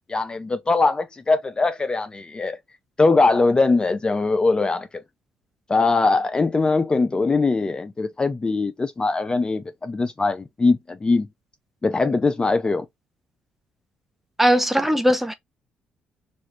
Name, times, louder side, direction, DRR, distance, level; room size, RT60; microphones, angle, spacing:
voice 1, 0.1-2.6 3.0-5.0 5.7-11.3 11.8-12.9, left 3 dB, 25° left, 0.4 m, -21 dB
voice 2, 14.4-15.3, equal, 5° right, 0.7 m, -19 dB
3.1 x 2.4 x 2.8 m
hypercardioid pair, 55°, 4 cm